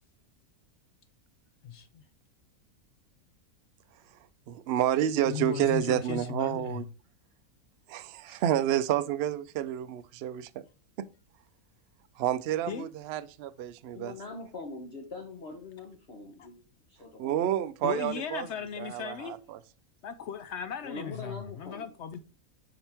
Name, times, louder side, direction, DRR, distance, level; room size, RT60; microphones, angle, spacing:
voice 1, 1.6-2.0 5.2-6.8 8.3-8.4 12.7-12.9 16.4-16.5 17.8-19.4 20.0-22.2, left 8 dB, 70° left, 0.7 m, -37 dB
voice 2, 4.5-6.9 7.9-10.5 11.0-11.1 12.2-14.1 17.2-18.5 18.8-19.6, right 11 dB, 75° right, 0.5 m, -29 dB
voice 3, 13.9-16.6 16.9-17.5 20.8-21.9, left 3 dB, 45° left, 1.1 m, -42 dB
7.2 x 5.0 x 3.4 m
omnidirectional pair, 1.6 m